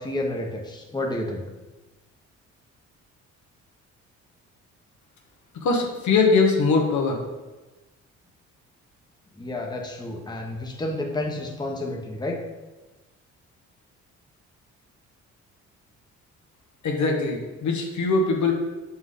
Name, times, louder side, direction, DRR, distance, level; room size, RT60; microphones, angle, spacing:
voice 1, 0.0-1.4 9.4-12.4, left 1 dB, 15° left, 1 dB, 1.2 m, -30 dB
voice 2, 5.6-7.2 16.8-18.5, left 4 dB, 70° left, 1 dB, 1.6 m, -21 dB
6.7 x 6.2 x 3.8 m, 1.1 s
cardioid pair, 90°, 30 cm